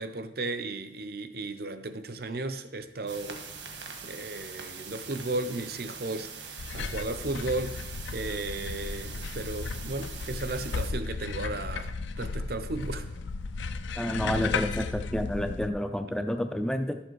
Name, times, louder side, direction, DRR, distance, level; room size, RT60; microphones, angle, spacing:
voice 1, 0.0-3.4 4.0-7.8 8.1-11.9 12.2-13.1, right 2 dB, 55° right, 0.7 m, -35 dB
sound 1, 3.1-10.9, right 5 dB, 80° right, 1.5 m, -43 dB
sound 2, 6.6-15.7, left 4 dB, 90° left, 0.5 m, -35 dB
voice 2, 14.0-17.0, left 1 dB, 5° left, 0.4 m, -29 dB
12.0 x 7.2 x 4.6 m
head